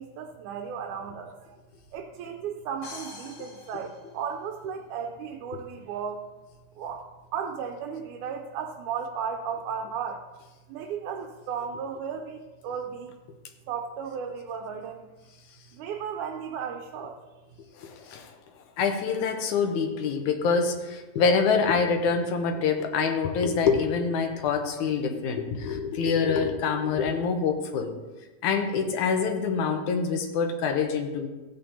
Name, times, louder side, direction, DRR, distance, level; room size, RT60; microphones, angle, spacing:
voice 1, 0.0-1.4 1.9-6.3 6.8-10.3 10.7-13.1 13.7-15.1 15.7-17.2, right 7 dB, 90° right, 2 dB, 2.2 m, -35 dB
sound 1, 2.8-4.8, left 3 dB, 50° left, 2.7 m, -45 dB
voice 2, 17.8-18.3 18.8-27.9 28.4-31.3, left 5 dB, 85° left, 5 dB, 2.3 m, -25 dB
14.5 x 8.7 x 2.8 m, 1.2 s
omnidirectional pair, 3.4 m